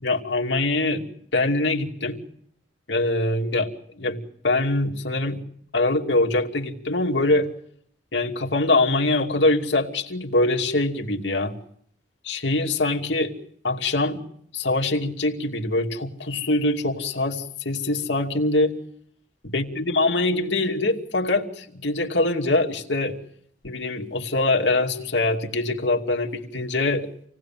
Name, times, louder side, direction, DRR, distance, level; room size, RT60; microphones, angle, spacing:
voice 1, 0.0-2.2 2.9-3.7 4.0-4.2 4.4-5.4 5.7-7.5 8.1-11.5 12.2-13.3 13.6-14.2 14.5-18.8 19.4-23.2 23.6-27.1, left 2 dB, 70° left, 2 dB, 2.7 m, -23 dB
28.0 x 19.0 x 7.5 m, 0.67 s
head